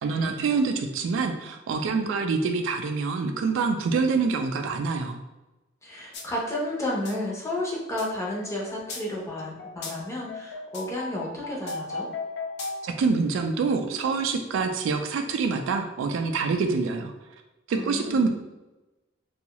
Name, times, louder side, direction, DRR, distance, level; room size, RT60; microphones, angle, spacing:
voice 1, 0.0-5.2 12.8-17.1 17.7-18.3, right 4 dB, 80° right, 5 dB, 0.3 m, -26 dB
voice 2, 5.8-12.1 17.7-18.2, left 1 dB, 15° left, -3 dB, 0.7 m, -32 dB
sound 1, 6.1-6.3 6.6-13.0, left 3 dB, 60° left, 0.4 m, -37 dB
2.7 x 2.3 x 2.9 m, 1.0 s
head